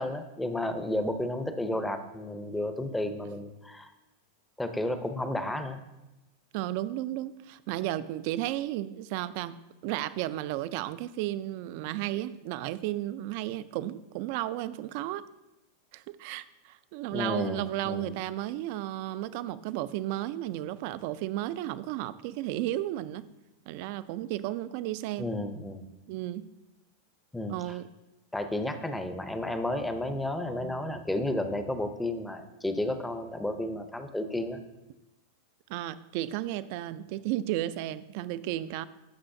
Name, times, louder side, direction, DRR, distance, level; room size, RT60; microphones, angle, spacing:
voice 1, 0.0-3.9 4.6-5.8 17.1-18.1 25.2-25.8 27.3-27.8 28.3-34.6, left 1 dB, 5° left, 8 dB, 0.6 m, -32 dB
voice 2, 6.5-9.6 9.8-15.2 15.9-23.3 23.7-25.3 26.1-26.5 27.5-27.9 35.7-38.8, right 14 dB, 55° right, 16 dB, 0.3 m, -33 dB
11.5 x 6.2 x 2.6 m, 1.0 s
supercardioid pair, 130°, 0 cm